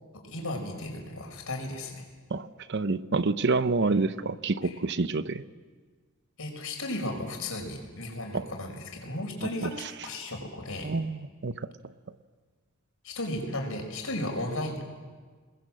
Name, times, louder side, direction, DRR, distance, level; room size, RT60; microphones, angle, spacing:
voice 1, 0.2-2.0 4.6-4.7 6.4-9.7 10.0-10.9 13.0-14.8, left 1 dB, 70° left, 3 dB, 5.5 m, -35 dB
voice 2, 2.3-5.5 8.3-8.4 9.6-9.7 10.8-11.7, right 3 dB, 55° right, 13 dB, 0.8 m, -28 dB
28.0 x 21.0 x 7.7 m, 1.5 s
head